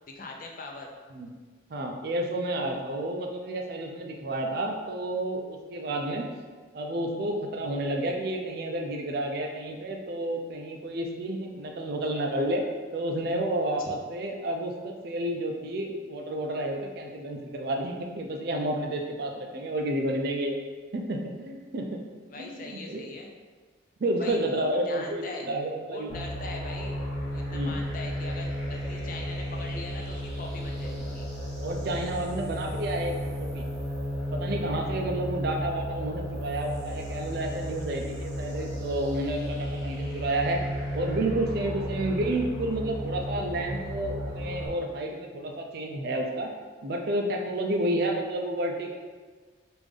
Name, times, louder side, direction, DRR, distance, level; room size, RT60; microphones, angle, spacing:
voice 1, 0.1-0.9 22.3-23.3 24.2-25.4 25.9-27.0 27.3-31.3, left 3 dB, 45° left, 1 dB, 0.4 m, -41 dB
voice 2, 1.7-6.3 6.7-12.6 12.9-20.6 20.9-22.0 22.4-23.0 24.0-26.1 27.5-27.7 30.9-31.0 31.6-33.6 34.3-40.6 40.9-46.5 46.8-49.0, right 1 dB, 50° right, 2 dB, 0.4 m, -30 dB
sound 1, 26.1-44.7, equal, 15° right, 1.0 m, -34 dB
3.2 x 2.5 x 3.5 m, 1.4 s
head